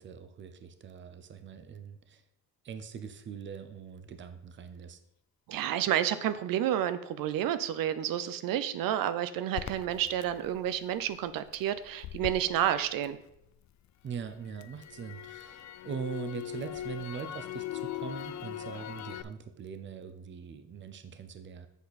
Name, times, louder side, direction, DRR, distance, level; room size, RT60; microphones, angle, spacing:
voice 1, 0.0-2.2 2.6-5.0 14.0-21.7, right 6 dB, 35° right, 10 dB, 0.7 m, -42 dB
voice 2, 5.5-13.2, right 11 dB, 90° right, 13 dB, 0.6 m, -30 dB
Crackle, 9.5-13.7 14.1-19.2, left 12 dB, 55° left, 0.5 m, -41 dB
8.2 x 6.4 x 4.1 m, 0.79 s
cardioid pair, 165°, 33 cm